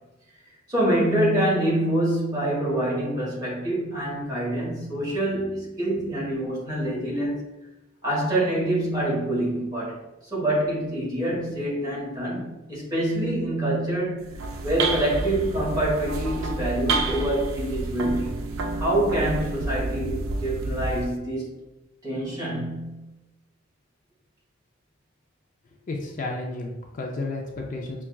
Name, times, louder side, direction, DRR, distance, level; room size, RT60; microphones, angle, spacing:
voice 1, 0.7-7.4 8.0-10.0 10.3-14.3 14.6-18.3 18.8-21.6 22.0-23.0, right 1 dB, 20° right, -6 dB, 1.3 m, -26 dB
sound 1, 14.2-21.2, right 3 dB, 80° right, 0.4 m, -29 dB
voice 2, 25.9-28.0, left 2 dB, 40° left, 0 dB, 0.4 m, -32 dB
5.6 x 2.3 x 2.3 m, 1.0 s
head